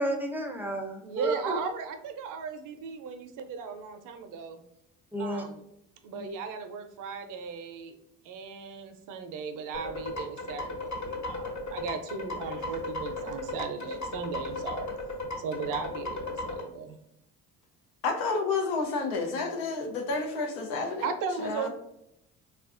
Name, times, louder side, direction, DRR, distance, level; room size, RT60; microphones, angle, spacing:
voice 1, 0.0-1.6 5.1-5.4 6.2-6.3 15.5-15.6, right 1 dB, 5° right, 3 dB, 0.6 m, -31 dB
voice 2, 1.0-4.6 5.2-5.6 6.0-7.9 8.2-14.9 15.4-17.0 21.0-21.7, right 5 dB, 60° right, 8 dB, 0.6 m, -37 dB
sound 1, 9.7-16.6, left 2 dB, 50° left, 1.2 m, -35 dB
voice 3, 18.0-21.1 21.4-21.7, left 4 dB, 80° left, 3 dB, 0.7 m, -30 dB
3.3 x 2.4 x 2.4 m, 0.81 s
supercardioid pair, 75°, 35 cm